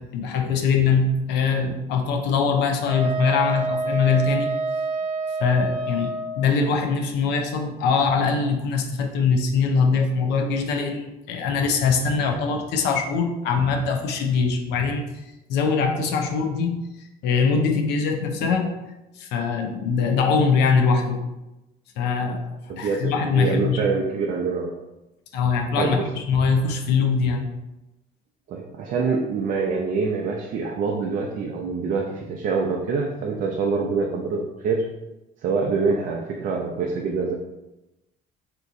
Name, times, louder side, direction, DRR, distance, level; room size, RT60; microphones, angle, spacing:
voice 1, 0.0-4.5 5.4-6.1 6.4-15.2 15.5-16.8 17.2-18.8 19.2-21.3 22.0-22.4 22.8-23.8 25.3-27.5, left 5 dB, 85° left, 4 dB, 0.5 m, -22 dB
Wind instrument woodwind instrument, 2.9-6.4, right 2 dB, 80° right, 0.8 m, -27 dB
voice 2, 22.7-24.7 25.8-26.0 28.5-34.8 35.4-37.3, right 4 dB, 55° right, 0 dB, 0.5 m, -25 dB
2.9 x 2.5 x 3.6 m, 0.98 s
cardioid pair, 110°, 17 cm